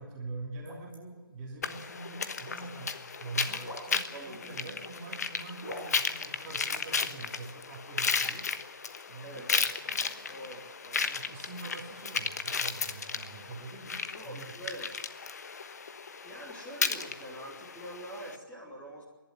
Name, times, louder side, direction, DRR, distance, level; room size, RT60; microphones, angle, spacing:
voice 1, 0.0-8.5 9.1-9.5 9.8-10.4 11.0-14.5, right 3 dB, 20° right, -1 dB, 2.9 m, -44 dB
sound 1, 0.6-1.0 2.1-2.6 3.6-3.9 4.8-5.1 5.4-5.9, equal, 70° left, 6.8 m, -42 dB
sound 2, 1.6-18.4, left 5 dB, 45° left, 1.2 m, -34 dB
voice 2, 4.1-4.6 9.2-9.7 10.0-11.1 14.1-15.0 16.2-19.0, right 1 dB, 10° left, -3 dB, 3.2 m, -45 dB
27.0 x 11.5 x 9.8 m, 1.3 s
figure-of-eight pair, 145°, 12 cm